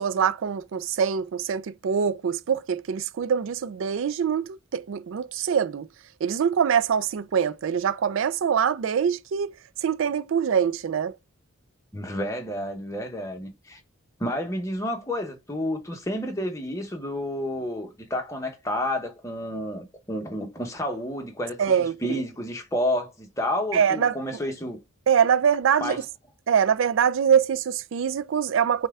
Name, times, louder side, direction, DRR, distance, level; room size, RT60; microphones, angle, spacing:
voice 1, 0.0-5.9 6.2-9.6 9.8-11.1 21.6-22.2 23.7-24.2 25.1-26.0 26.5-28.9, right 7 dB, 70° right, 0.4 m, -24 dB
voice 2, 11.9-13.8 14.2-24.8 25.8-26.0, left 1 dB, 15° left, 0.8 m, -30 dB
5.5 x 2.2 x 3.5 m
head